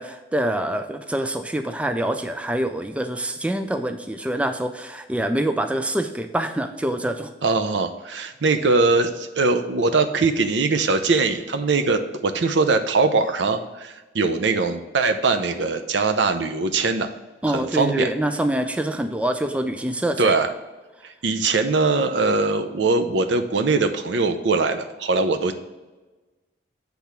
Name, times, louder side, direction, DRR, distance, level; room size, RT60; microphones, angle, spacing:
voice 1, 0.0-7.3 17.4-20.4, right 1 dB, 5° right, 7 dB, 0.3 m, -25 dB
voice 2, 7.4-17.1 17.5-18.1 20.2-20.5 21.2-25.5, right 3 dB, 80° right, 8 dB, 0.6 m, -21 dB
8.2 x 3.5 x 5.8 m, 1.2 s
head